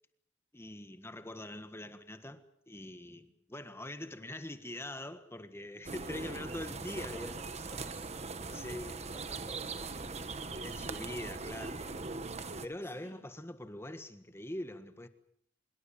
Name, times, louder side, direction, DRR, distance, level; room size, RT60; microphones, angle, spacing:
voice 1, 0.5-7.4 8.3-9.0 10.6-11.8 12.6-15.1, left 1 dB, 15° left, 1.5 m, -43 dB
sound 1, 5.8-12.7, right 3 dB, 40° right, 1.3 m, -41 dB
voice 2, 6.0-10.7 10.9-12.0 12.8-13.2, right 1 dB, 10° right, 7.3 m, -56 dB
25.5 x 22.0 x 7.2 m
head